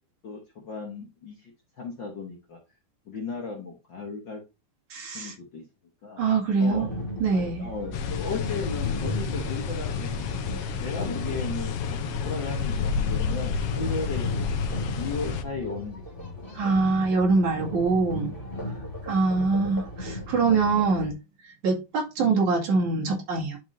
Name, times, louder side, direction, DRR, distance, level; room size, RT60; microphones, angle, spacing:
voice 1, 0.2-2.6 3.0-4.4 5.1-5.6 6.0-6.3 6.6-6.9 7.3-10.4 10.8-14.5 14.9-16.8, left 4 dB, 50° left, 1.5 m, -36 dB
voice 2, 4.9-5.3 6.2-6.9 7.2-7.7 16.5-18.3 19.0-21.2 21.6-23.6, right 4 dB, 70° right, 3.7 m, -24 dB
sound 1, 6.7-21.1, equal, 20° left, 2.0 m, -37 dB
sound 2, 7.9-15.4, left 6 dB, 70° left, 1.4 m, -30 dB
11.0 x 4.5 x 2.7 m
omnidirectional pair, 3.5 m